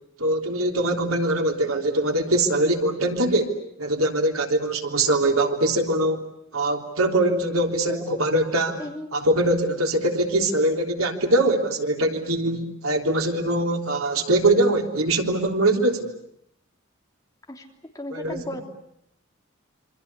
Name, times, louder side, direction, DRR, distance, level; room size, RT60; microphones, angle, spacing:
voice 1, 0.2-3.5 3.8-6.2 6.5-8.8 9.1-16.1 18.1-18.6, right 1 dB, 90° right, 3 dB, 3.5 m, -22 dB
voice 2, 7.9-8.2 8.8-9.1 17.5-17.6 17.9-18.6, left 1 dB, 15° left, 2 dB, 3.2 m, -35 dB
27.5 x 25.5 x 8.3 m, 0.74 s
head